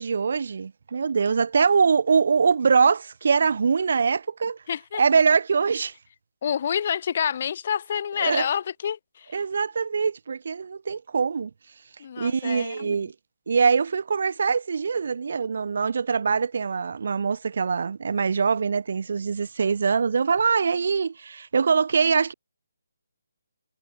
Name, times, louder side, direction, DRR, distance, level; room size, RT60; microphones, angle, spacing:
voice 1, 0.0-4.6 5.0-5.9 8.2-8.5 9.3-11.5 12.2-13.1 13.5-22.3, right 5 dB, 50° right, 0.5 m, -23 dB
voice 2, 4.7-5.0 6.4-9.4 12.0-13.1, left 8 dB, 35° left, 1.0 m, -28 dB
hypercardioid pair, 170°, 0 cm